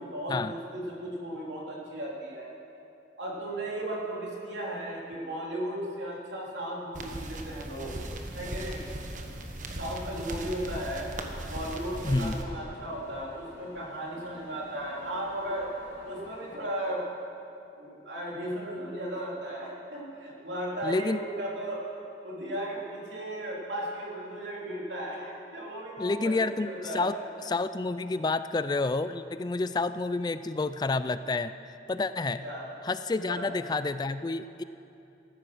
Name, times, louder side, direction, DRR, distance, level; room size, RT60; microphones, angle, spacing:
voice 1, 0.0-2.5 3.2-8.0 8.3-8.9 9.7-11.1 11.5-15.7 16.0-17.0 17.8-21.8 22.2-27.0 32.4-32.7 33.2-33.5, right 1 dB, 85° right, -4 dB, 3.4 m, -36 dB
sound 1, 6.9-12.4, right 1 dB, 45° right, 1.3 m, -38 dB
sound 2, 11.0-16.6, left 1 dB, 90° left, 2.7 m, -50 dB
voice 2, 12.0-12.4 20.8-21.2 26.0-27.1 27.5-31.5 31.9-32.4 32.8-34.6, left 3 dB, 25° left, 13 dB, 0.3 m, -29 dB
15.0 x 13.5 x 6.2 m, 2.8 s
head